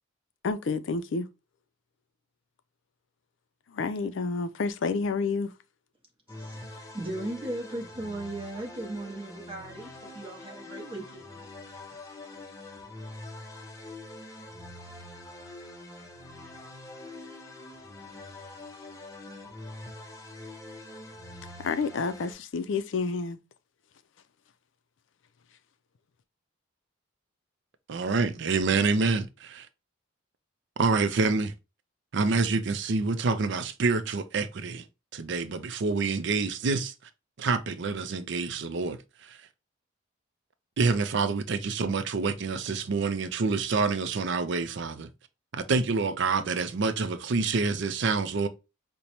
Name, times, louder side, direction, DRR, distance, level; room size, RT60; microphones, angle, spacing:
voice 1, 0.4-1.3 3.7-5.5 21.6-23.4, left 4 dB, 65° left, 0.4 m, -29 dB
sound 1, 6.3-22.3, left 2 dB, 15° left, 0.5 m, -44 dB
voice 2, 6.4-11.4, right 1 dB, 25° right, 0.7 m, -37 dB
voice 3, 27.9-29.7 30.8-31.5 32.1-34.8 35.1-36.9 37.4-39.4 40.8-45.1 45.5-48.5, right 4 dB, 60° right, 0.4 m, -27 dB
5.1 x 2.1 x 2.9 m
head